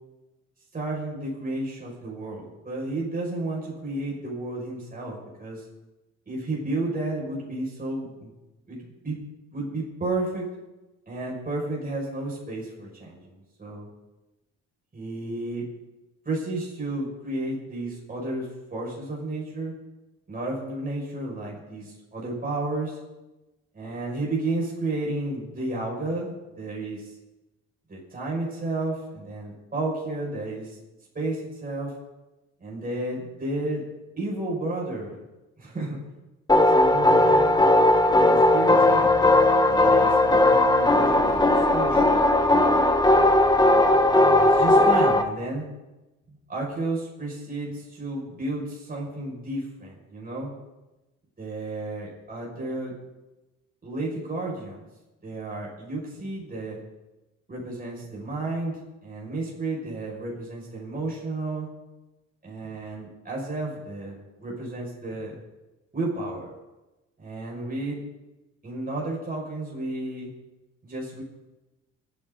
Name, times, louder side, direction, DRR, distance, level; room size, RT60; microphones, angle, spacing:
voice 1, 0.7-5.6 6.3-8.3 8.7-9.2 9.5-10.5 11.1-13.9 14.9-15.7 16.3-19.7 20.3-23.0 23.7-27.1 27.9-30.8 31.1-31.9 32.6-33.8 34.2-35.2 35.6-36.0 36.7-37.5 38.0-39.2 39.7-42.2 44.1-45.6 46.3-50.5 51.4-52.9 53.8-54.9 55.2-56.8 57.5-61.7 62.4-65.4 65.9-66.5 67.2-68.0 68.6-70.3 70.8-71.2, right 2 dB, 30° right, -3 dB, 5.8 m, -32 dB
sound 1, 36.5-45.2, left 1 dB, 15° left, 1.3 m, -18 dB
27.0 x 9.8 x 3.9 m, 1.1 s
cardioid pair, 90°, 30 cm